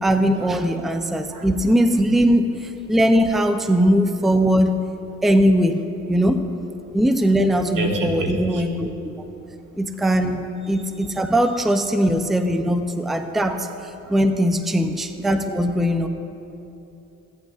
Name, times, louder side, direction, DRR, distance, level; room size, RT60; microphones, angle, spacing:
voice 1, 0.0-4.8 5.2-6.4 6.9-8.9 9.8-13.7 14.1-16.1, equal, ahead, 7 dB, 0.4 m, -20 dB
voice 2, 1.0-1.5 2.9-3.0 6.8-6.9 7.7-8.7 9.1-10.0 13.3-13.4 13.9-14.1 15.9-16.1, right 2 dB, 80° right, 2 dB, 1.2 m, -31 dB
15.5 x 9.0 x 2.4 m, 2.8 s
cardioid pair, 85°, 32 cm